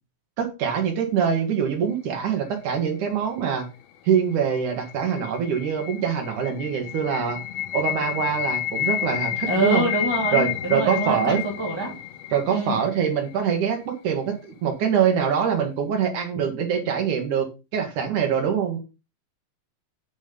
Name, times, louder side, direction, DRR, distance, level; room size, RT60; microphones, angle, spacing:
voice 1, 0.4-3.7 4.0-7.4 7.7-9.8 10.3-11.4 12.3-14.3 14.6-17.5 17.7-18.8, right 7 dB, 65° right, 4 dB, 2.9 m, -24 dB
sound 1, 4.4-13.4, left 12 dB, 85° left, 1.4 m, -30 dB
voice 2, 9.5-12.0 12.5-12.8, right 1 dB, 10° left, -1 dB, 1.8 m, -26 dB
8.7 x 5.2 x 5.1 m, 0.29 s
omnidirectional pair, 4.0 m